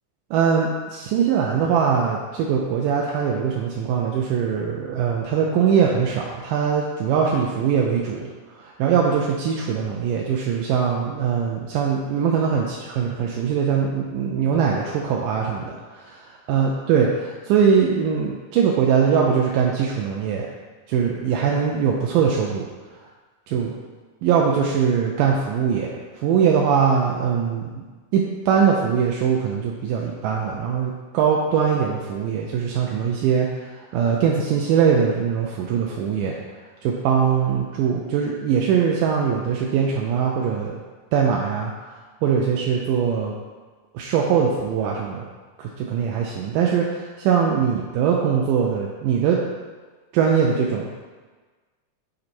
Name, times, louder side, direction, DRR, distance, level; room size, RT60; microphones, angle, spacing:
voice 1, 0.3-8.3 8.6-15.8 16.5-20.5 20.9-22.7 23.5-23.7 24.2-25.9 26.2-27.8 28.1-33.5 33.9-36.4 36.8-40.8 41.1-41.7 42.2-43.3 43.9-45.2 45.6-49.4 50.1-50.9, right 7 dB, 80° right, -1 dB, 2.2 m, -21 dB
7.7 x 4.1 x 4.5 m, 1.4 s
omnidirectional pair, 3.9 m